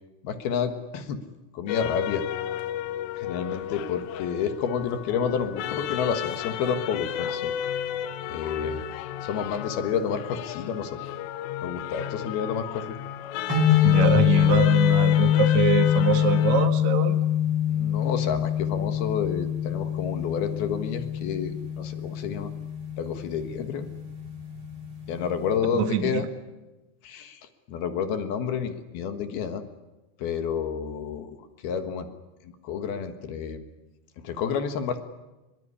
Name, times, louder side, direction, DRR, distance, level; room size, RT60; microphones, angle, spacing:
voice 1, 0.2-1.2 1.5-2.2 3.2-7.5 8.3-8.8 9.2-11.0 11.6-13.0 13.9-14.6 17.7-22.5 23.0-23.9 25.1-26.3 27.0-27.4 27.7-29.6 30.2-31.4 31.6-32.1 32.6-33.7 34.2-35.0, left 7 dB, 65° left, 8 dB, 2.8 m, -30 dB
sound 1, 1.7-16.7, left 10 dB, 80° left, 3.5 m, -33 dB
sound 2, 13.5-25.6, left 11 dB, 30° right, 3.4 m, -24 dB
voice 2, 13.8-17.2 25.7-26.3, right 7 dB, 55° right, 7 dB, 2.1 m, -24 dB
23.0 x 22.5 x 9.9 m, 1.1 s
omnidirectional pair, 5.8 m